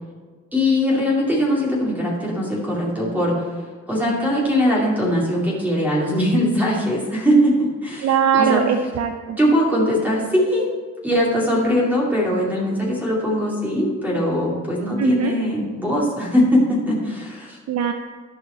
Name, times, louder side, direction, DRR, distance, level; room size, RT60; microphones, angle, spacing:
voice 1, 0.5-3.5 3.9-8.6 9.4-10.7 11.0-17.6, equal, 5° right, -5 dB, 2.5 m, -21 dB
voice 2, 8.0-9.4 15.0-15.4 17.7-17.9, right 8 dB, 60° right, 6 dB, 0.6 m, -20 dB
13.5 x 4.8 x 4.4 m, 1.5 s
cardioid pair, 90°, 30 cm